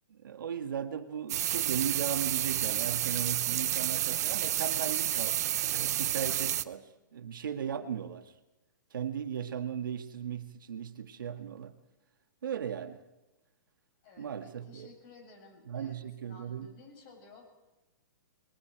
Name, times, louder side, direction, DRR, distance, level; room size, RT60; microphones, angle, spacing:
voice 1, 0.1-8.3 8.9-11.8 12.4-13.0 14.2-14.9 15.7-16.7, right 8 dB, 85° right, 7 dB, 1.8 m, -37 dB
sound 1, 1.3-6.6, right 12 dB, 55° right, 0.7 m, -30 dB
voice 2, 14.0-17.5, left 3 dB, 35° left, 2 dB, 7.4 m, -55 dB
29.0 x 21.5 x 4.7 m, 1.0 s
hypercardioid pair, 160°, 11 cm